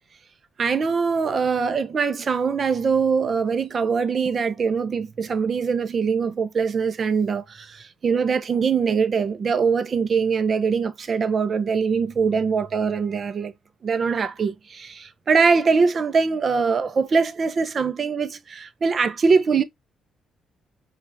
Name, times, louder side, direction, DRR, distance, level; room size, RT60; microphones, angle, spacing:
voice 1, 0.6-13.5 13.8-19.6, right 5 dB, 45° right, 0.6 m, -22 dB
5.4 x 2.4 x 2.6 m
cardioid pair, 90°, 0 cm